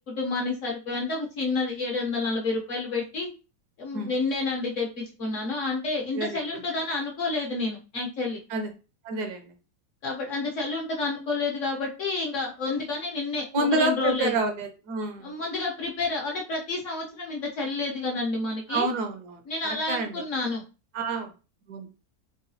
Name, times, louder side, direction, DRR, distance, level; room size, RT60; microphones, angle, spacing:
voice 1, 0.1-3.3 3.8-8.4 10.0-13.4 13.7-14.4 15.2-18.9 19.5-20.6, left 3 dB, 55° left, -1 dB, 1.0 m, -29 dB
voice 2, 6.1-6.6 8.5-8.7 9.0-9.5 13.5-15.3 18.7-20.2 20.9-21.3 21.7-21.9, right 2 dB, 75° right, 5 dB, 1.2 m, -28 dB
3.8 x 2.3 x 2.6 m, 0.32 s
omnidirectional pair, 1.8 m